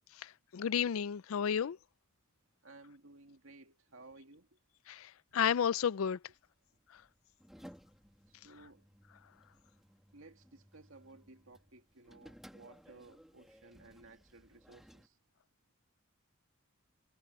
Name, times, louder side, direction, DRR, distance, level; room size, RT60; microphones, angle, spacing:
voice 1, 0.5-1.8 4.9-5.0 5.3-6.2, left 8 dB, 80° left, 0.4 m, -31 dB
voice 2, 2.6-4.6 8.3-8.9 10.1-15.2, right 2 dB, 75° right, 2.3 m, -57 dB
sound 1, 5.8-15.1, equal, ahead, 1.9 m, -59 dB
head